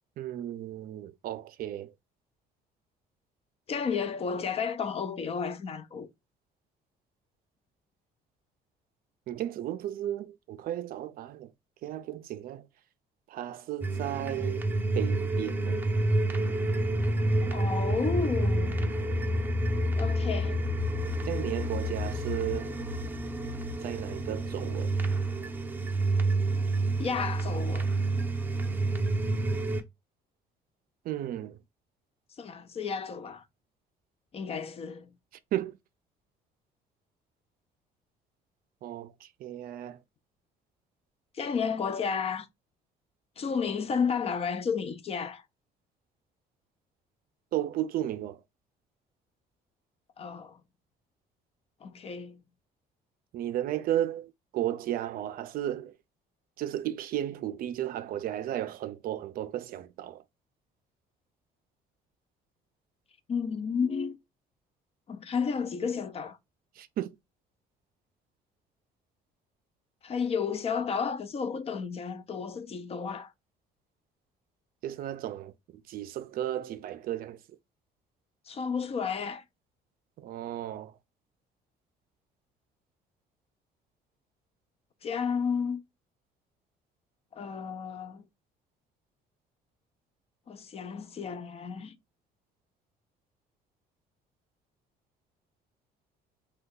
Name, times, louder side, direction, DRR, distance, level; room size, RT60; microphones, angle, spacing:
voice 1, 0.2-1.9 9.3-11.5 11.8-12.7 13.3-14.7 14.9-15.8 21.2-22.7 23.8-24.9 31.0-31.6 35.5-35.8 38.8-40.0 47.5-48.4 53.3-55.9 56.6-60.2 66.8-67.1 74.8-77.4 80.2-81.0, right 12 dB, 60° right, 0.4 m, -34 dB
voice 2, 3.7-6.1 17.5-18.8 20.0-20.6 27.0-27.9 32.4-33.4 34.3-35.1 41.3-42.5 43.4-45.4 50.2-50.6 51.8-52.4 63.3-64.2 65.1-66.4 70.0-73.3 78.5-79.4 85.0-85.8 87.3-88.2 90.5-92.0, left 6 dB, 35° left, 0.5 m, -32 dB
sound 1, 13.8-29.8, right 1 dB, 10° right, 0.6 m, -29 dB
2.7 x 2.2 x 3.6 m
cardioid pair, 110°, 17 cm